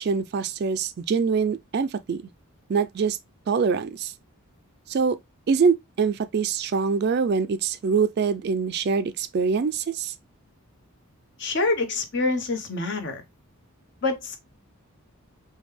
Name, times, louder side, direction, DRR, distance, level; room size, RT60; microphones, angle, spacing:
voice 1, 0.0-2.2 2.7-3.2 3.5-4.1 4.9-5.2 5.5-10.1, right 5 dB, 45° right, 0.3 m, -24 dB
voice 2, 11.4-13.2 14.0-14.4, left 3 dB, 55° left, 0.9 m, -26 dB
5.0 x 2.2 x 3.2 m
head